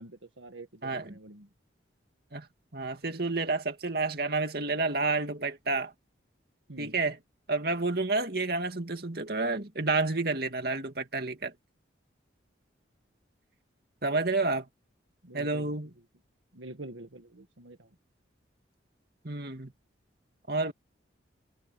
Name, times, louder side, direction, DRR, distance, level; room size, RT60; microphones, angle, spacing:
voice 1, 0.0-1.5 6.7-6.9 15.2-15.7 16.5-17.9, right 2 dB, 85° right, 1.6 m, -46 dB
voice 2, 0.8-1.1 2.3-2.5 2.7-5.9 6.8-7.2 7.5-11.5 14.0-14.7 15.3-15.9 19.2-19.7 20.5-20.7, right 3 dB, 55° right, 2.5 m, -30 dB
head